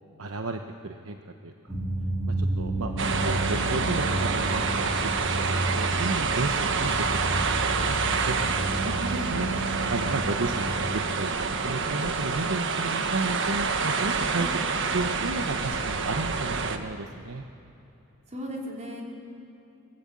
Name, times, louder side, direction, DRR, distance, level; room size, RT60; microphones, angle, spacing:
voice 1, 0.2-1.7 2.3-2.9 3.2-8.4 8.8-9.5 9.9-11.3 11.6-14.5 14.9-17.4, right 3 dB, 80° right, 5 dB, 1.0 m, -33 dB
sound 1, 1.7-11.0, right 1 dB, 15° right, 1.9 m, -31 dB
voice 2, 2.7-3.1 9.1-9.3 14.4-14.5 18.3-19.0, equal, 35° right, -2 dB, 4.3 m, -37 dB
sound 2, 3.0-16.8, right 4 dB, 65° right, 1.3 m, -27 dB
22.5 x 21.0 x 8.5 m, 2.9 s
head